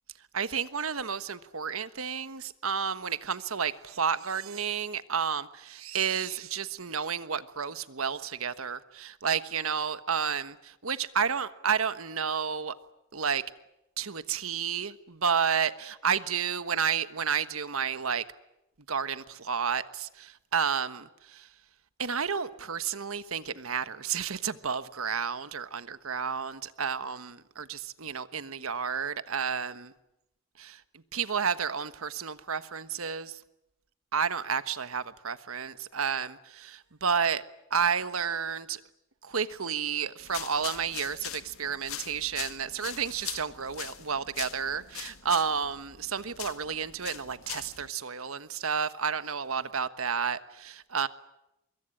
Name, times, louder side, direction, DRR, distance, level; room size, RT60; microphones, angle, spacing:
voice 1, 0.3-12.7 13.1-13.4 14.0-18.2 18.9-21.5 22.0-29.9 30.6-30.8 31.1-33.4 34.1-37.4 37.7-38.8 39.2-51.1, right 6 dB, 80° right, 1.3 m, -31 dB
sound 1, 40.2-47.9, left 11 dB, 80° left, 1.8 m, -42 dB
24.5 x 22.5 x 10.0 m
head